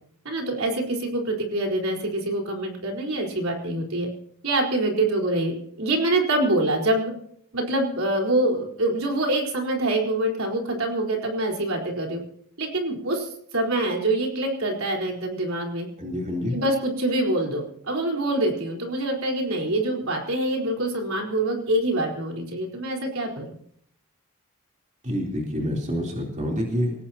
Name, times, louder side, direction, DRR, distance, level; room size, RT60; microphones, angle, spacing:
voice 1, 0.2-4.1 4.4-7.1 7.5-12.2 12.6-15.9 16.5-23.5, right 1 dB, 70° right, 0 dB, 4.4 m, -25 dB
voice 2, 16.0-16.6 25.0-26.9, equal, 35° right, -1 dB, 3.6 m, -27 dB
23.0 x 18.5 x 2.9 m, 0.67 s
head